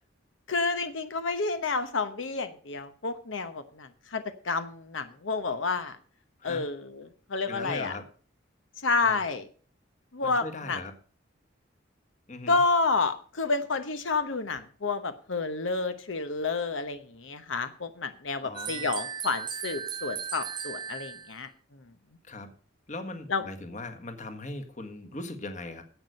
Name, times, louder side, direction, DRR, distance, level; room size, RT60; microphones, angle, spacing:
voice 1, 0.5-6.0 6.4-7.9 8.8-9.5 10.1-10.8 12.5-21.5 23.3-23.4, left 3 dB, 85° left, 10 dB, 1.0 m, -30 dB
voice 2, 7.5-8.1 9.0-9.2 10.2-10.9 12.3-12.6 18.4-18.9 22.2-22.5 22.9-25.8, left 2 dB, 40° left, 7 dB, 1.5 m, -39 dB
sound 1, 18.5-21.4, right 7 dB, 25° right, 0.5 m, -36 dB
11.0 x 8.2 x 6.5 m, 0.41 s
head